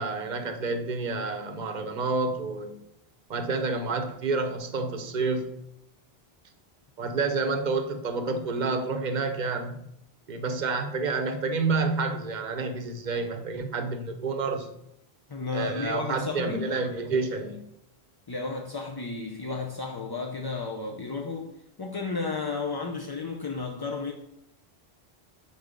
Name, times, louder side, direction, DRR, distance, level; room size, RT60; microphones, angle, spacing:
voice 1, 0.0-2.8 3.3-5.6 7.0-9.8 10.3-14.7 15.5-17.6, right 3 dB, 50° right, 0.8 m, -29 dB
voice 2, 15.3-16.8 18.3-24.1, left 4 dB, 40° left, 0.3 m, -33 dB
5.4 x 4.6 x 5.1 m
omnidirectional pair, 1.0 m